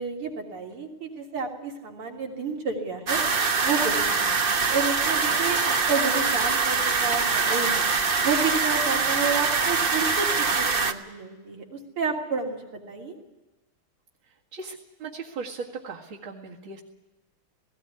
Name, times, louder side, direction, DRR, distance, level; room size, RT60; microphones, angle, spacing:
voice 1, 0.0-3.2 3.6-7.9 8.2-13.2, right 4 dB, 80° right, 0 dB, 4.0 m, -30 dB
sound 1, 3.1-10.9, right 4 dB, 40° right, 0.8 m, -24 dB
voice 2, 14.5-16.8, right 4 dB, 65° right, -4 dB, 2.8 m, -38 dB
18.5 x 17.0 x 9.6 m, 1.1 s
omnidirectional pair, 2.4 m